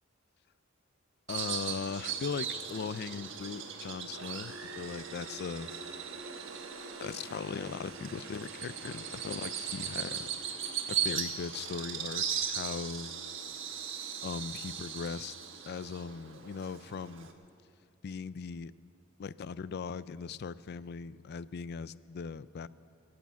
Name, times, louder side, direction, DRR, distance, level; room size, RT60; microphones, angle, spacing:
voice 1, 1.3-5.7 7.0-10.3 10.9-13.2 14.2-15.3 15.7-17.3 18.0-18.7 19.2-22.7, left 5 dB, 55° left, 17 dB, 0.4 m, -39 dB
Bird vocalization bird call bird song, 1.3-17.3, right 7 dB, 70° right, 1.3 m, -38 dB
sound 1, 4.1-10.8, right 7 dB, 90° right, 0.9 m, -50 dB
22.0 x 8.7 x 7.2 m, 2.4 s
head